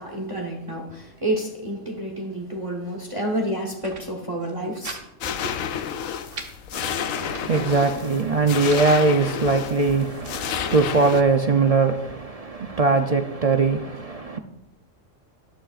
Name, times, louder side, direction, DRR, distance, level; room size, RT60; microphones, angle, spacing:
voice 1, 0.0-5.5, right 1 dB, 25° right, 1.1 m, -29 dB
sound 1, 3.6-4.1 4.4-5.0 5.3-5.4 5.8-6.5 7.1-7.7 8.3-8.9 9.6-10.4, right 4 dB, 70° right, 1.5 m, -41 dB
sound 2, 5.2-11.2, left 8 dB, 85° left, 1.1 m, -30 dB
voice 2, 6.7-14.4, right 3 dB, 50° right, 0.4 m, -21 dB
12.5 x 11.5 x 2.4 m
omnidirectional pair, 1.3 m